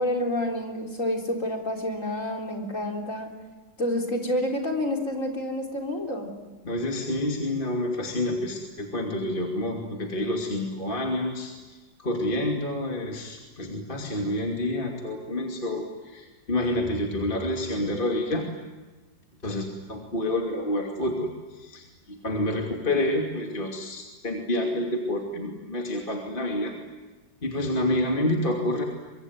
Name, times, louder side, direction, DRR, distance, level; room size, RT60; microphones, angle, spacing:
voice 1, 0.0-3.3 3.8-6.3, left 1 dB, 45° left, 2 dB, 4.3 m, -28 dB
voice 2, 6.6-11.5 12.0-18.5 19.4-21.3 21.6-26.8 27.4-28.8, left 1 dB, 30° left, 1 dB, 2.8 m, -28 dB
25.0 x 23.5 x 9.5 m, 1.2 s
omnidirectional pair, 1.9 m